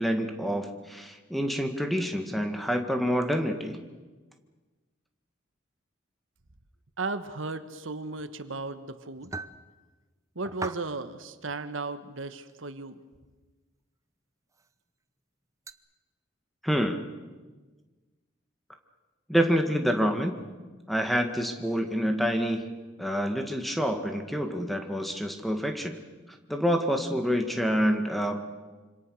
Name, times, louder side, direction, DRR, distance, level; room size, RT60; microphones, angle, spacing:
voice 1, 0.0-3.8 16.6-17.0 19.3-20.4 20.9-22.7 23.0-26.0 26.5-28.4, equal, ahead, 5 dB, 1.9 m, -27 dB
voice 2, 7.0-9.3 10.3-13.0, right 3 dB, 80° right, 11 dB, 1.4 m, -35 dB
sound 1, 9.2-9.6 10.4-10.9 11.5-11.6 12.5-12.6 14.5-14.7 15.7-15.8, right 3 dB, 15° right, 0.7 m, -38 dB
26.5 x 26.0 x 6.5 m, 1.3 s
head